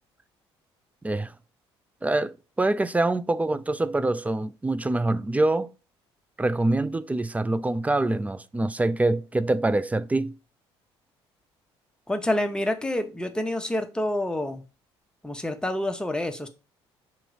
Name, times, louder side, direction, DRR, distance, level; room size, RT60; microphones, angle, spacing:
voice 1, 1.0-1.3 2.0-5.7 6.4-10.4, right 2 dB, 10° right, 0.4 m, -25 dB
voice 2, 12.1-14.6 15.2-16.5, left 1 dB, 5° left, 1.1 m, -27 dB
5.8 x 3.8 x 4.8 m
figure-of-eight pair, 50°, 14 cm